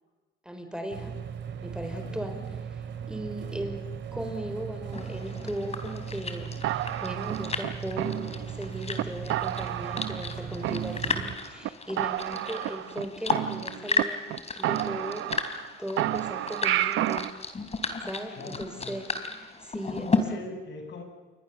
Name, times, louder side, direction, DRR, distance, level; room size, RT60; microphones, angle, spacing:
voice 1, 0.4-1.2 1.6-2.4 2.7-14.2 14.6-17.3 18.0-19.1 19.6-20.2, equal, 5° right, 6 dB, 4.4 m, -37 dB
sound 1, 0.9-11.4, right 7 dB, 65° right, 2.6 m, -38 dB
sound 2, 4.9-20.2, left 4 dB, 30° left, 3.6 m, -34 dB
sound 3, 6.6-8.6 9.0-9.1 9.3-10.3 10.6-11.3 11.6-11.7 12.0-14.0 14.3-14.4 14.6-15.7 16.0-17.3, right 14 dB, 85° right, 0.8 m, -30 dB
voice 2, 18.4-19.0 19.9-21.0, left 3 dB, 65° left, 4 dB, 7.0 m, -41 dB
29.5 x 23.5 x 6.9 m, 1.2 s
cardioid pair, 90°, 20 cm